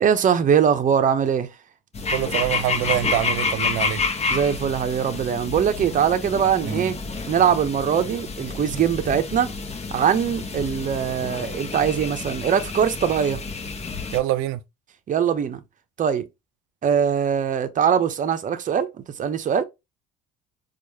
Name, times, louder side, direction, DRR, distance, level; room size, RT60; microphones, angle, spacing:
voice 1, 0.0-1.5 4.3-7.0 7.3-9.5 9.9-13.4 15.1-15.6 16.0-16.2 16.8-18.9 19.2-19.7, right 8 dB, 40° right, 0.8 m, -22 dB
sound 1, 1.9-14.2, left 4 dB, 30° left, 1.0 m, -29 dB
voice 2, 2.1-4.0 14.1-14.6, right 14 dB, 75° right, 0.5 m, -24 dB
4.6 x 2.5 x 2.8 m
supercardioid pair, 85°, 21 cm